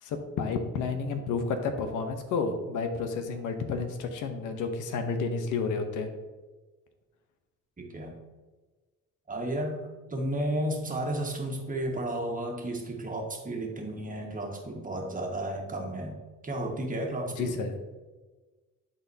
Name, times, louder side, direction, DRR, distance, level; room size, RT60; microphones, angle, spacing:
voice 1, 0.0-6.1 17.4-17.8, left 4 dB, 85° left, 7 dB, 0.9 m, -31 dB
voice 2, 7.8-8.2 9.3-9.8 10.1-16.2 16.4-17.5, right 1 dB, 25° right, 1 dB, 1.5 m, -33 dB
11.5 x 4.1 x 2.8 m, 1.3 s
cardioid pair, 90°, 30 cm